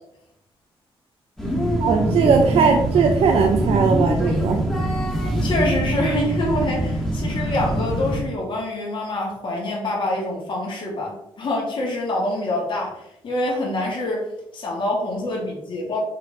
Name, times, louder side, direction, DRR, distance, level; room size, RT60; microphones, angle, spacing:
sound 1, 1.4-8.2, equal, 5° left, 1.7 m, -23 dB
voice 1, 1.8-4.6, right 5 dB, 85° right, 2 dB, 0.8 m, -19 dB
voice 2, 5.4-14.3 14.5-16.0, left 1 dB, 55° left, -2 dB, 2.5 m, -26 dB
6.3 x 4.3 x 3.8 m, 0.78 s
cardioid pair, 105°, 10 cm